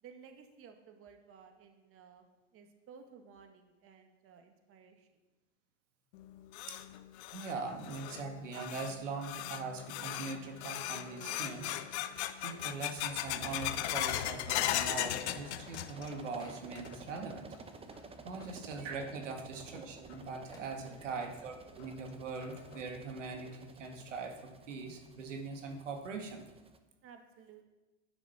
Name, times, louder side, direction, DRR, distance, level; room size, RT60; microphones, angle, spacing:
voice 1, 0.0-2.3 2.5-5.1 19.1-19.3 20.7-21.0 27.0-27.6, right 6 dB, 40° right, 5 dB, 1.9 m, -56 dB
sound 1, 6.1-16.3 16.5-17.2 17.5-17.6 18.4-18.5 20.1-20.2 20.7-20.8 21.2-21.3 21.8-21.9 22.4-22.8, left 13 dB, 65° left, 0.9 m, -38 dB
voice 2, 7.3-11.8 12.4-17.5 18.2-26.5, right 4 dB, 85° right, 3 dB, 1.9 m, -41 dB
sound 2, 10.3-12.1 12.5-12.6 12.9-14.6 14.9-15.3 15.5-15.6 15.9-17.3 17.7-18.0 18.3-18.9 19.4-19.5 20.1-20.2 20.5-21.3 21.7-21.8 22.5-22.6 23.0-23.9, left 2 dB, 10° left, 3.0 m, -57 dB
sound 3, 13.4-26.8, right 4 dB, 15° right, 0.9 m, -53 dB
11.0 x 10.0 x 5.8 m, 1.1 s
hypercardioid pair, 105°, 36 cm